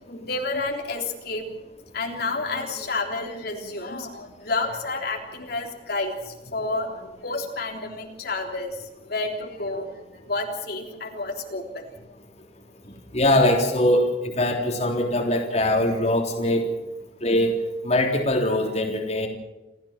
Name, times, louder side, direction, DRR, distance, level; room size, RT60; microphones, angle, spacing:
voice 1, 0.1-1.5 1.9-12.0 12.9-13.0, left 3 dB, 60° left, 2 dB, 3.6 m, -30 dB
voice 2, 13.1-16.6 17.2-17.5 17.8-19.3, left 1 dB, 40° left, 2 dB, 3.5 m, -22 dB
28.5 x 15.5 x 7.4 m, 1.1 s
head